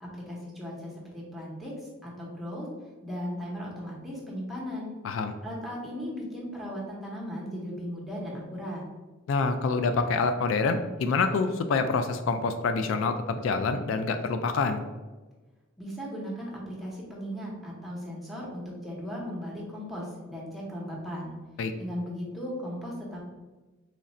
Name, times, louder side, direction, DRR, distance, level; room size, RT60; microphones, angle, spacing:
voice 1, 0.0-1.7 2.0-2.7 3.0-4.9 5.4-8.8 15.8-21.3 21.8-23.2, equal, ahead, -4 dB, 0.9 m, -37 dB
voice 2, 9.3-14.8 21.6-21.7, left 4 dB, 75° left, 8 dB, 0.3 m, -26 dB
3.2 x 2.5 x 4.1 m, 1.2 s
head